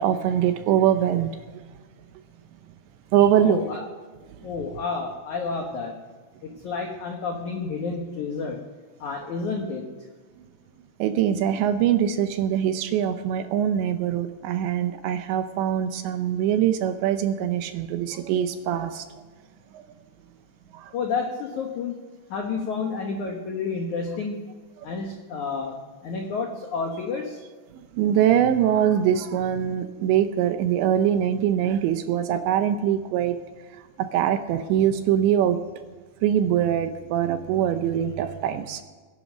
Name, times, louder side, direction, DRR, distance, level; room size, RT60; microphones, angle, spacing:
voice 1, 0.0-1.4 3.1-3.6 11.0-19.1 19.7-19.8 20.7-20.9 24.9-25.0 27.7-33.4 33.7-35.6 36.2-38.8, right 10 dB, 80° right, 9 dB, 2.8 m, -23 dB
voice 2, 3.3-3.8 4.4-5.9 6.6-8.6 9.0-9.9 20.9-21.9 22.3-24.4 24.8-27.4, left 4 dB, 80° left, 2 dB, 1.7 m, -30 dB
20.0 x 11.0 x 6.3 m, 1.5 s
omnidirectional pair, 5.6 m